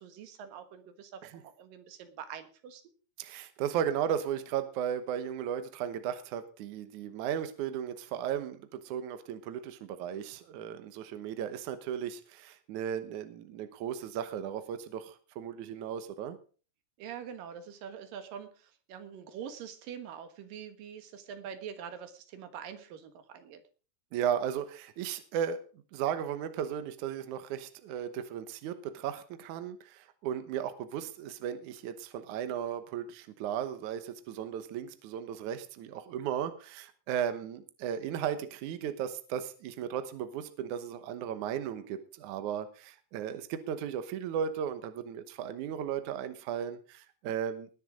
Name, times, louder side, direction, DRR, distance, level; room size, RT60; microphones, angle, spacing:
voice 1, 0.0-2.8 17.0-23.6, right 8 dB, 60° right, 9 dB, 2.7 m, -45 dB
voice 2, 3.2-16.4 24.1-25.6 25.9-47.7, right 9 dB, 80° right, 10 dB, 1.7 m, -35 dB
20.0 x 6.8 x 5.0 m, 0.38 s
omnidirectional pair, 5.1 m